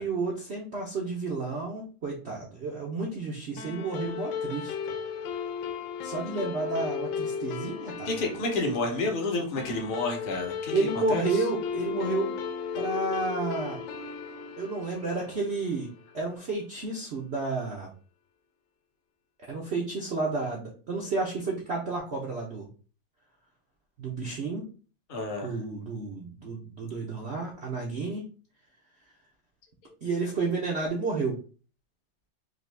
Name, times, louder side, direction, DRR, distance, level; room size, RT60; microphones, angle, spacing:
voice 1, 0.0-4.7 6.0-8.1 8.6-8.7 10.7-12.3 12.7-13.8 14.6-17.9 19.5-22.7 24.0-24.6 25.4-28.2 30.0-31.4, right 3 dB, 60° right, -2 dB, 0.6 m, -31 dB
sound 1, 3.6-16.3, left 6 dB, 80° left, 1.3 m, -35 dB
voice 2, 8.0-11.4 25.1-25.5 29.8-29.9, left 2 dB, 45° left, 2 dB, 0.7 m, -30 dB
3.9 x 2.9 x 3.3 m, 0.38 s
omnidirectional pair, 2.1 m